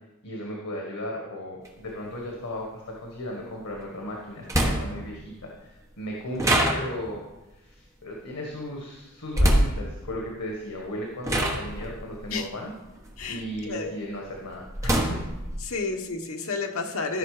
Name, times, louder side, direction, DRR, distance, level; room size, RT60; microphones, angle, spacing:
voice 1, 0.2-7.2 7.5-12.7 13.3-15.2, left 1 dB, 85° left, -1 dB, 1.6 m, -36 dB
sound 1, 1.7-1.8 3.8-3.9 4.5-5.1 6.4-7.2 9.3-9.8 10.7-10.9 11.3-13.6 14.1-15.6, right 1 dB, 15° right, 1.2 m, -24 dB
voice 2, 13.2-13.9 15.6-17.2, left 3 dB, 70° left, 4 dB, 1.1 m, -31 dB
13.5 x 5.8 x 5.0 m, 1.0 s
head